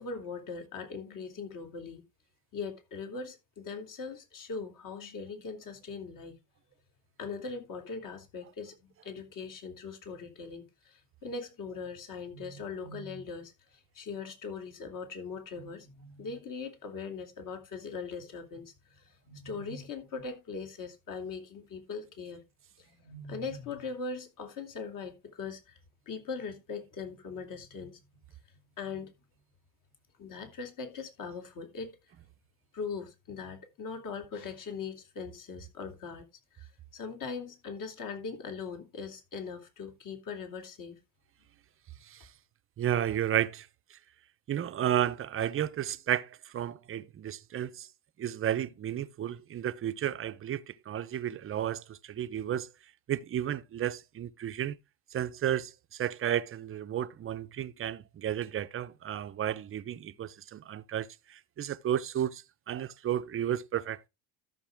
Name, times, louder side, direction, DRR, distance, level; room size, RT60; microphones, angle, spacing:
voice 1, 0.0-2.0 2.5-6.4 7.2-13.5 13.9-18.7 19.2-22.4 22.8-25.8 26.1-28.0 28.8-29.1 30.2-31.9 32.7-36.2 36.6-41.0, left 5 dB, 45° left, 3.0 m, -40 dB
voice 2, 42.8-44.0 44.5-47.9 48.2-52.7 53.1-54.8 55.1-64.1, right 10 dB, 30° right, 0.7 m, -33 dB
13.0 x 6.7 x 3.5 m
supercardioid pair, 120°, 46 cm